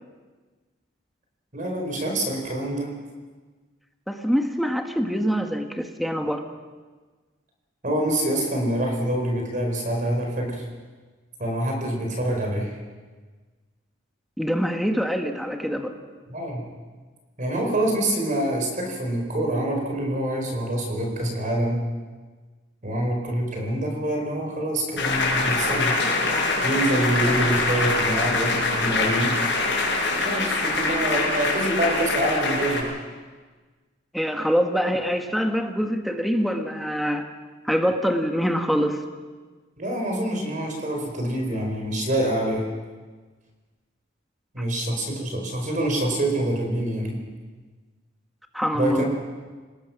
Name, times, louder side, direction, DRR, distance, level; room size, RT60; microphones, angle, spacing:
voice 1, 1.5-2.9 7.8-10.6 11.4-12.7 16.3-16.6 17.4-21.8 22.8-26.0 26.6-29.3 30.1-32.9 39.8-42.6 44.5-47.2 48.7-49.0, right 1 dB, 45° right, 1 dB, 4.6 m, -26 dB
voice 2, 4.1-6.4 14.4-15.9 34.1-37.3 37.6-39.0 44.6-44.7 48.5-49.0, equal, ahead, 4 dB, 1.4 m, -24 dB
sound 1, 25.0-32.8, left 3 dB, 70° left, 6.4 m, -24 dB
26.0 x 19.5 x 6.0 m, 1.4 s
head